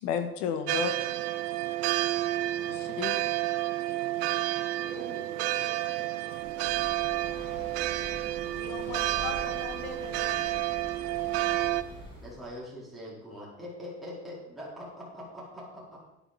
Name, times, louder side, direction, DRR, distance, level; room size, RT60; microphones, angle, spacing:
voice 1, 0.0-1.0 2.7-3.2 8.5-10.4, left 8 dB, 75° left, 7 dB, 1.8 m, -34 dB
sound 1, 0.7-11.8, right 15 dB, 90° right, 0.7 m, -30 dB
voice 2, 4.7-6.8, right 3 dB, 45° right, -1 dB, 3.9 m, -48 dB
Breathing, 6.3-12.5, left 1 dB, 15° left, 3.3 m, -46 dB
voice 3, 12.2-16.0, left 1 dB, ahead, -8 dB, 4.4 m, -43 dB
12.0 x 11.0 x 4.4 m, 0.89 s
cardioid pair, 175°, 30 cm